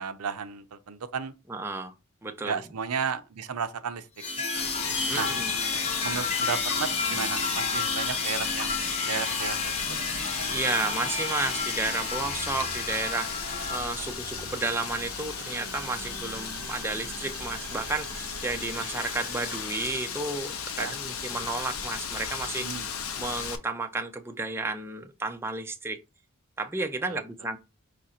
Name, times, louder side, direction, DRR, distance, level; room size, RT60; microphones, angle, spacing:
voice 1, 0.0-1.3 2.4-4.0 5.1-5.3 6.0-8.8 9.1-9.7 20.8-20.9 22.6-22.9 27.1-27.2, right 6 dB, 90° right, 0.6 m, -33 dB
voice 2, 1.5-1.9 2.2-2.6 5.1-5.6 10.5-22.7 23.2-26.0 26.6-27.6, right 3 dB, 10° right, 0.4 m, -32 dB
sound 1, 4.2-13.8, left 4 dB, 30° left, 0.9 m, -31 dB
Wind, 4.5-23.6, left 7 dB, 65° left, 0.6 m, -36 dB
sound 2, 9.8-19.7, right 4 dB, 45° right, 0.6 m, -43 dB
5.1 x 2.5 x 4.1 m
head